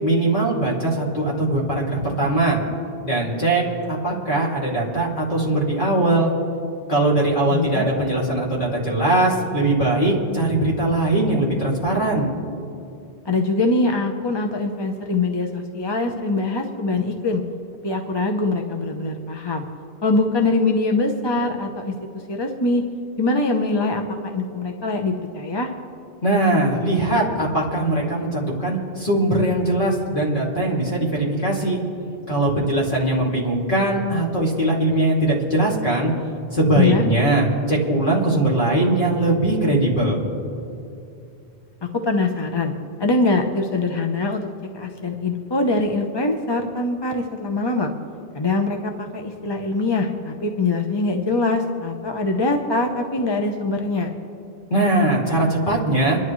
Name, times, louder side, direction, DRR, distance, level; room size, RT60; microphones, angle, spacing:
voice 1, 0.0-2.6 3.0-3.6 3.9-6.3 6.9-12.3 26.2-31.8 32.3-36.1 36.5-40.2 54.7-56.2, right 1 dB, 55° left, -4 dB, 2.8 m, -20 dB
voice 2, 7.5-7.9 13.3-17.4 17.8-19.6 20.0-21.9 22.3-22.8 23.2-25.7 36.8-37.0 42.0-42.7 43.0-44.5 44.7-47.9 48.3-54.1, left 3 dB, 25° left, 3 dB, 0.8 m, -23 dB
26.5 x 11.0 x 3.1 m, 2.7 s
omnidirectional pair, 1.0 m